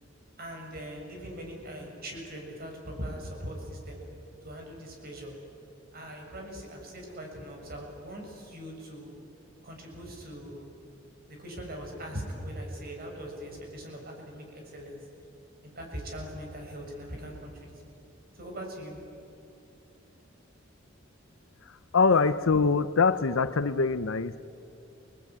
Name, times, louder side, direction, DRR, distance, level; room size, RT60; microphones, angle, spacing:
voice 1, 0.4-4.0 4.4-5.3 5.9-9.1 9.6-10.7 11.3-15.0 15.6-17.7 18.3-19.0, equal, 50° right, 1 dB, 6.8 m, -41 dB
voice 2, 21.6-24.4, left 4 dB, 80° left, 12 dB, 0.7 m, -24 dB
28.5 x 20.5 x 9.4 m, 2.7 s
head